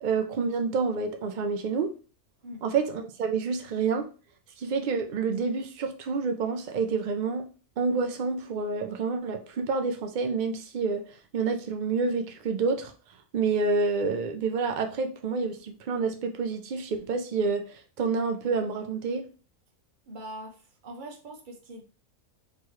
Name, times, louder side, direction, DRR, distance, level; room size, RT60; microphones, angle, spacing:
voice 1, 0.0-1.9 2.6-4.1 4.6-7.5 7.8-11.0 11.3-12.9 13.3-19.3, right 4 dB, 85° right, 0.4 m, -28 dB
voice 2, 20.1-21.8, right 1 dB, 45° right, 0.8 m, -42 dB
4.5 x 3.1 x 3.0 m
omnidirectional pair, 1.4 m